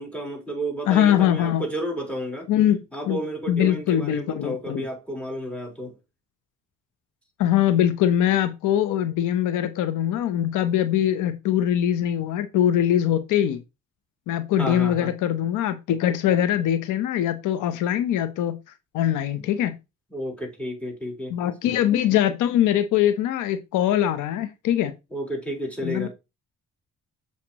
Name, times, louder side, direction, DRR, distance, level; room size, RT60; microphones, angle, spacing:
voice 1, 0.0-2.5 2.9-6.0 14.6-15.1 20.1-21.3 25.1-26.1, right 1 dB, 5° left, 3.9 m, -31 dB
voice 2, 0.9-1.6 2.5-2.8 3.1-3.2 3.5-4.8 7.4-13.6 14.3-18.6 18.9-19.8 21.3-24.9 25.8-26.1, left 11 dB, 85° left, 0.8 m, -22 dB
7.5 x 5.7 x 2.9 m
cardioid pair, 90°, 30 cm